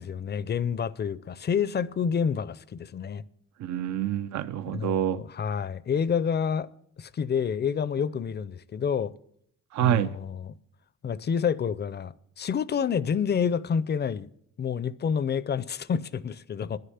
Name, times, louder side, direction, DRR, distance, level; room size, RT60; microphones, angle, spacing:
voice 1, 0.0-3.2 4.7-6.7 7.0-9.1 9.8-10.5 11.0-14.3 14.6-16.8, left 7 dB, 35° left, 0.5 m, -28 dB
voice 2, 3.6-5.2 9.7-10.2, right 11 dB, 65° right, 0.5 m, -27 dB
10.5 x 6.7 x 9.3 m
cardioid pair, 90°, 30 cm